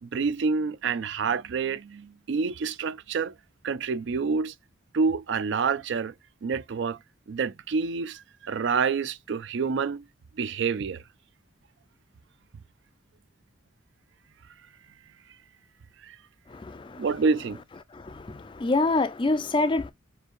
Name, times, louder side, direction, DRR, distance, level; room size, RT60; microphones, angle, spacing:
voice 1, 0.0-3.3 3.6-4.5 4.9-6.1 6.4-7.0 7.3-10.0 10.4-11.0 16.0-16.2 17.0-17.6, right 5 dB, 60° right, 0.4 m, -28 dB
voice 2, 16.5-17.1 17.9-19.9, left 2 dB, 25° left, 0.3 m, -26 dB
4.9 x 2.7 x 2.4 m
head